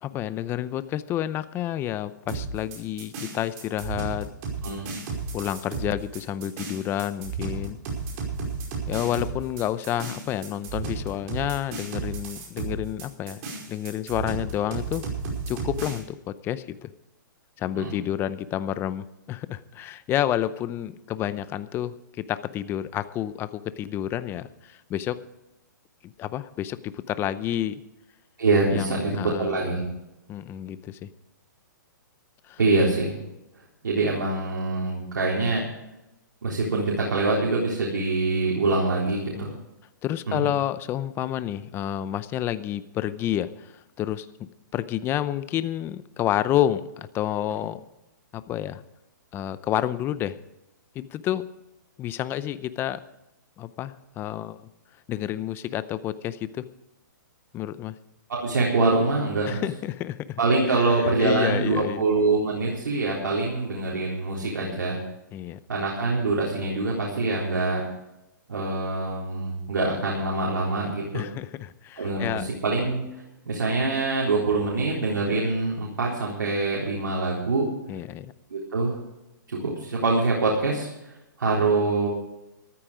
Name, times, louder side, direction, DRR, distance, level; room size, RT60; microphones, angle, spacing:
voice 1, 0.0-4.3 5.3-7.8 8.9-13.4 13.7-15.0 15.5-16.9 17.6-25.2 26.0-27.8 28.7-29.6 30.3-31.1 32.5-32.6 39.3-39.5 40.0-44.3 44.7-47.8 48.3-48.8 49.3-50.4 50.9-51.4 52.0-53.0 53.6-54.7 55.1-56.6 57.5-57.9 59.5-60.4 60.7-62.0 65.3-65.6 71.1-72.5 77.9-78.3, left 12 dB, 20° left, 15 dB, 0.7 m, -29 dB
sound 1, 2.3-16.0, right 4 dB, 40° right, 5.1 m, -33 dB
voice 2, 28.4-29.8 32.6-33.1 33.8-35.6 36.4-39.5 40.3-40.5 58.3-59.6 60.4-65.0 65.7-67.8 68.5-71.3 72.0-77.7 78.5-79.0 79.5-80.9 81.4-82.1, right 3 dB, 85° right, -3 dB, 3.9 m, -24 dB
14.5 x 12.5 x 5.0 m, 0.93 s
hypercardioid pair, 140°, 11 cm